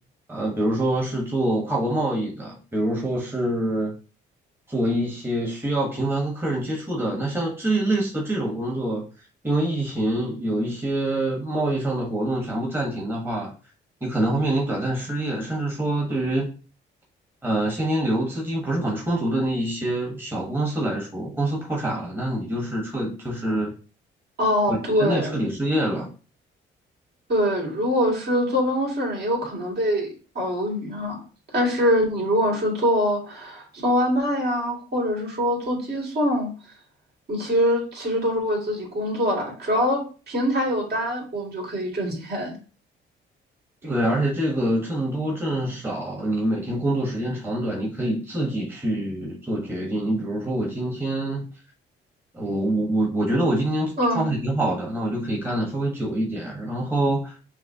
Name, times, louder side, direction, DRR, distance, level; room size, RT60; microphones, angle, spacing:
voice 1, 0.3-4.0 4.7-9.0 9.4-13.5 14.0-16.5 17.4-23.7 24.7-26.1 43.8-51.4 52.3-57.4, right 1 dB, 10° right, 1.2 m, -25 dB
voice 2, 24.4-25.4 27.3-31.2 31.5-36.5 37.3-40.0 40.3-42.5 54.0-54.3, equal, 55° right, 2.2 m, -24 dB
5.8 x 2.1 x 2.7 m
cardioid pair, 90°, 20 cm